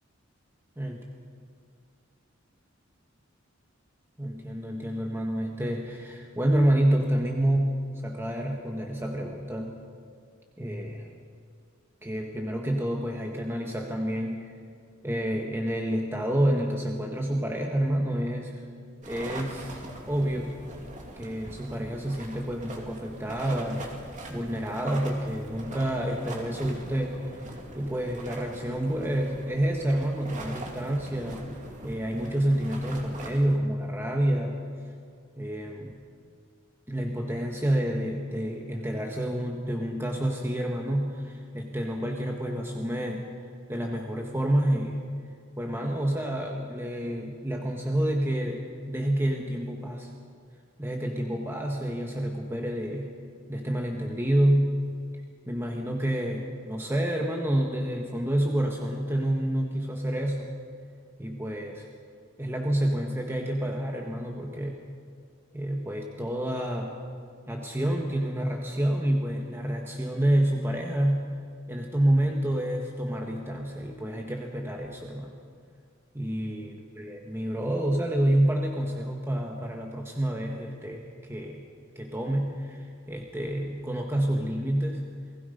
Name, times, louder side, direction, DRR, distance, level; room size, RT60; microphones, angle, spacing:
voice 1, 4.2-9.8 10.6-11.1 12.0-14.5 15.0-18.6 19.1-20.5 21.2-23.9 24.3-27.2 27.7-31.5 31.8-34.6 35.4-36.0 36.9-43.3 43.7-45.0 45.6-50.1 50.8-53.1 53.5-54.8 55.5-60.5 61.2-61.8 62.4-64.8 65.5-67.0 67.5-71.3 71.7-75.4 76.1-81.6 81.9-85.1, right 1 dB, 10° right, 1 dB, 1.5 m, -28 dB
sound 1, 19.0-33.6, right 1 dB, 40° right, 2.8 m, -42 dB
29.0 x 19.5 x 5.5 m, 2.3 s
head